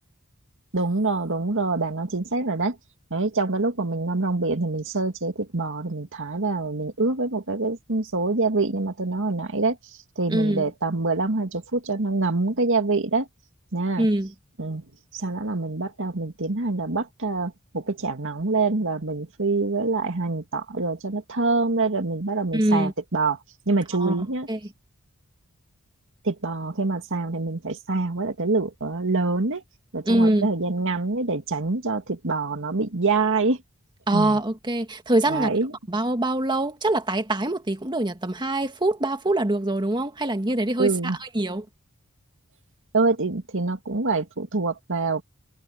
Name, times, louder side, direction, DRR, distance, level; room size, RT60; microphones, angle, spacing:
voice 1, 0.7-2.8 3.1-9.8 10.2-13.3 13.7-14.1 14.6-14.8 15.1-23.4 23.7-24.5 26.2-29.6 29.9-33.6 34.1-34.4 35.3-35.7 40.8-41.2 42.9-45.2, right 3 dB, 60° right, 2.2 m, -25 dB
voice 2, 10.3-10.7 14.0-14.3 22.5-22.9 24.0-24.6 30.1-30.5 34.1-35.5 35.9-41.7, right 1 dB, 20° right, 1.9 m, -24 dB
head